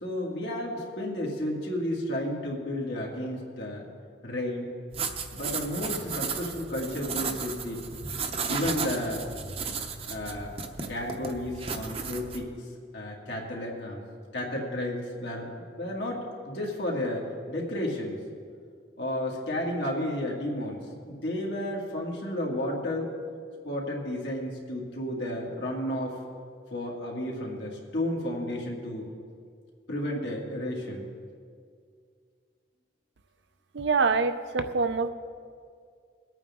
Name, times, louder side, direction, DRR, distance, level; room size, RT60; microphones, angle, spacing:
voice 1, 0.0-3.9 4.2-4.7 5.3-7.9 8.5-9.3 10.1-12.5 12.9-14.0 14.3-18.2 19.0-23.1 23.6-26.2 26.7-29.1 29.9-31.0, left 1 dB, 75° left, -2 dB, 2.5 m, -32 dB
sound 1, 4.9-12.4, right 5 dB, 35° right, 0.7 m, -34 dB
voice 2, 33.7-35.1, right 4 dB, 75° right, 9 dB, 0.7 m, -25 dB
22.5 x 8.9 x 3.7 m, 2.2 s
head